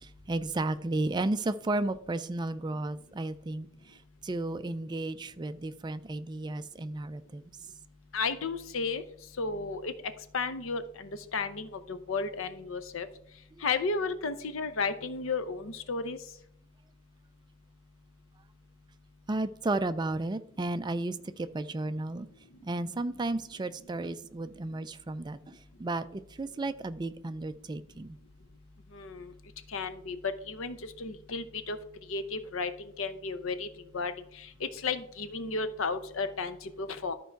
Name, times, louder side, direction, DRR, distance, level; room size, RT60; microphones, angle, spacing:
voice 1, 0.0-3.7 4.2-7.5 19.3-22.3 22.6-28.2, right 2 dB, 20° right, 12 dB, 0.3 m, -33 dB
voice 2, 8.1-9.0 9.4-9.9 10.3-13.1 13.6-16.2 28.9-29.3 29.7-31.8 32.1-33.7 33.9-37.1, left 4 dB, 65° left, 11 dB, 0.7 m, -33 dB
12.5 x 4.6 x 4.5 m, 0.70 s
head